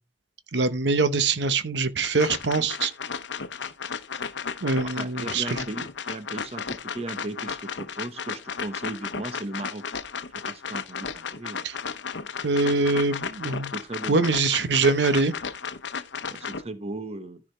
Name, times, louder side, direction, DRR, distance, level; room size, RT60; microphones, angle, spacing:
voice 1, 0.5-2.9 4.6-5.6 11.6-11.7 12.4-13.7 14.1-15.3, right 3 dB, 75° right, 0.9 m, -23 dB
sound 1, 2.0-16.6, left 6 dB, 85° left, 0.8 m, -34 dB
voice 2, 4.8-9.8 10.5-11.7 13.7-14.2 16.3-17.4, right 2 dB, 35° right, 1.0 m, -36 dB
14.0 x 4.9 x 3.2 m
head